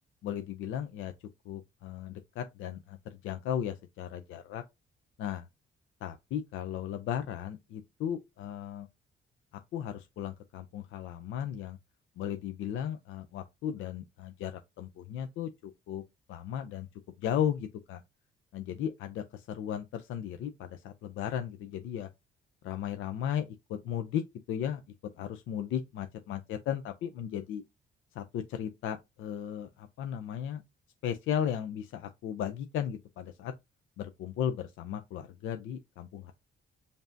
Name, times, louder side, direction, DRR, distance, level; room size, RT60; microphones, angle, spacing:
voice 1, 0.2-1.1 1.5-4.6 5.2-5.5 6.0-8.9 9.7-11.8 12.2-16.0 16.3-16.9 17.2-18.0 18.5-22.1 22.6-24.8 25.2-27.6 28.1-30.6 31.0-33.5 34.0-36.3, left 9 dB, 80° left, 0.5 m, -36 dB
5.2 x 2.7 x 2.5 m
cardioid pair, 90°, 20 cm